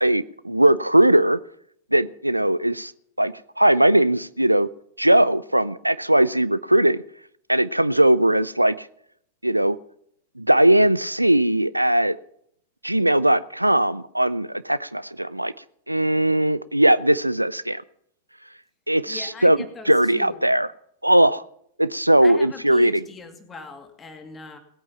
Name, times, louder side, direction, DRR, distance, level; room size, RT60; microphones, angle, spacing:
voice 1, 0.0-1.4 1.9-2.9 3.2-4.7 5.0-7.0 7.5-8.9 9.4-9.8 10.4-12.2 12.8-15.5 15.9-17.8 18.9-19.6 19.9-20.7 21.0-21.4 21.8-23.0, right 1 dB, 85° right, 18 dB, 0.4 m, -19 dB
voice 2, 19.1-20.5 22.2-24.6, left 4 dB, 20° left, 6 dB, 2.4 m, -40 dB
18.5 x 8.8 x 5.7 m, 0.69 s
figure-of-eight pair, 90°, 0 cm